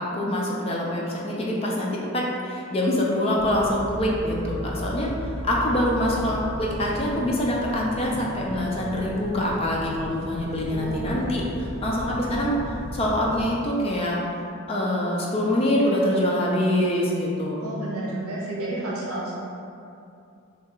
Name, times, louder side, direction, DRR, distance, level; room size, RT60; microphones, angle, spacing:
voice 1, 0.0-5.1 5.4-14.2 14.7-17.7, left 1 dB, 25° left, -3 dB, 0.5 m, -25 dB
sound 1, 3.3-13.5, equal, 15° right, 0.9 m, -35 dB
voice 2, 10.7-11.2 17.6-19.3, right 2 dB, 75° right, -6 dB, 0.8 m, -31 dB
3.1 x 2.8 x 3.7 m, 2.6 s
head